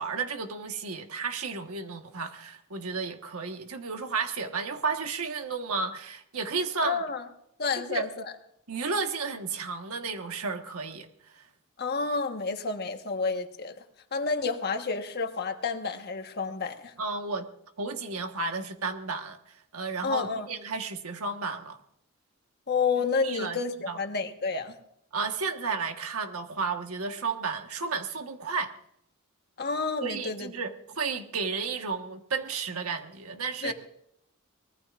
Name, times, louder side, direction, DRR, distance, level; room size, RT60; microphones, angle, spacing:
voice 1, 0.0-7.0 7.9-8.1 8.7-11.1 11.3-11.4 17.0-17.4 17.8-21.8 23.2-23.6 23.9-24.0 25.1-28.7 30.0-30.7 31.0-33.7, right 4 dB, 85° right, 5 dB, 1.4 m, -32 dB
voice 2, 6.8-7.2 7.6-8.3 11.8-13.8 14.1-16.9 20.0-20.5 22.7-24.7 29.6-30.5 33.6-33.7, left 4 dB, 50° left, 6 dB, 1.3 m, -30 dB
24.0 x 20.0 x 2.5 m, 0.73 s
head